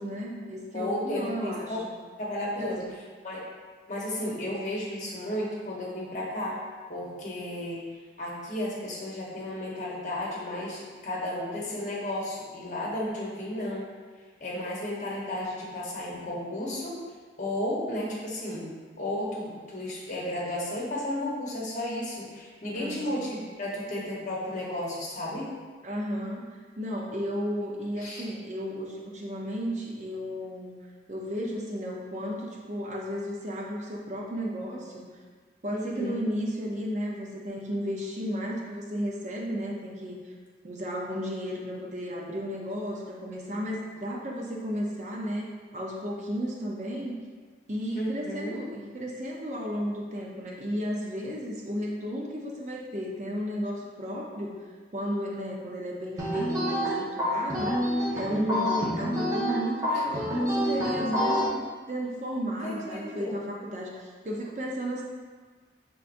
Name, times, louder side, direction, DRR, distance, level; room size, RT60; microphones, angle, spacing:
voice 1, 0.0-1.9 2.6-2.9 22.7-23.3 25.8-30.7 31.1-35.1 35.6-40.2 40.6-45.5 45.7-47.2 47.7-54.6 54.9-65.0, equal, 40° right, -2 dB, 0.6 m, -34 dB
voice 2, 0.7-1.8 2.2-2.8 3.2-3.5 3.9-6.6 6.9-7.8 8.2-13.9 14.4-17.0 17.4-25.5 28.0-28.2 35.7-36.1 47.9-48.6 58.3-58.9 62.6-63.3, left 1 dB, 45° left, -4 dB, 1.0 m, -33 dB
sound 1, 56.2-61.5, equal, 20° right, 1.2 m, -27 dB
5.5 x 3.7 x 2.5 m, 1.5 s
head